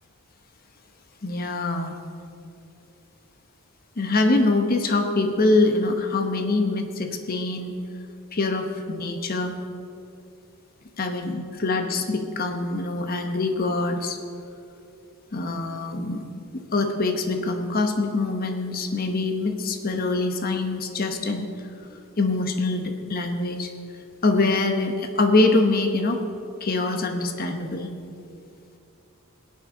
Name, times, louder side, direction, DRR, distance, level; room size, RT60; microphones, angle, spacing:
voice 1, 1.2-2.0 4.0-7.7 8.3-9.6 11.0-14.2 15.3-16.2 16.5-21.5 22.2-23.7 24.2-26.2 26.6-27.9, left 2 dB, 45° left, 5 dB, 0.9 m, -24 dB
23.0 x 8.3 x 3.8 m, 2.5 s
head